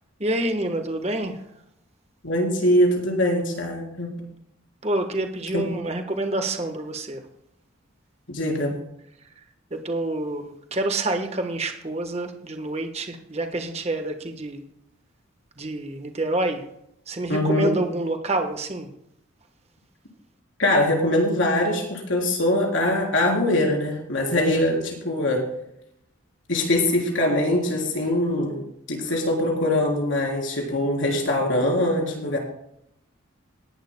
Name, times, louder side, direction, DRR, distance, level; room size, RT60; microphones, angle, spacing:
voice 1, 0.2-1.4 4.8-7.2 9.7-14.6 15.6-16.6 17.1-18.9 24.3-24.6, right 2 dB, 30° right, 6 dB, 1.2 m, -27 dB
voice 2, 2.2-4.1 5.5-5.7 8.3-8.7 17.3-17.7 20.6-25.4 26.5-32.4, left 1 dB, 65° left, 0 dB, 3.6 m, -22 dB
19.5 x 11.5 x 2.2 m, 0.76 s
head